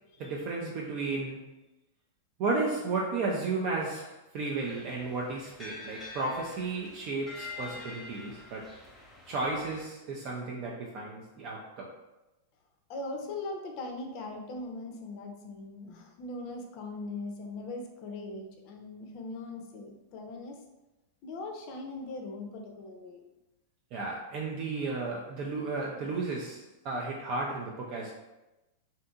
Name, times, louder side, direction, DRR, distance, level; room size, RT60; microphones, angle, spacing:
voice 1, 0.2-1.5 2.4-8.7 9.3-11.9 23.9-28.2, right 3 dB, 50° right, -2 dB, 0.4 m, -33 dB
sound 1, 4.6-9.8, left 3 dB, 15° left, 0.7 m, -46 dB
voice 2, 12.9-20.6 21.2-23.2, left 2 dB, 50° left, 3 dB, 0.5 m, -40 dB
2.6 x 2.6 x 2.3 m, 1.0 s
hypercardioid pair, 100°, 0 cm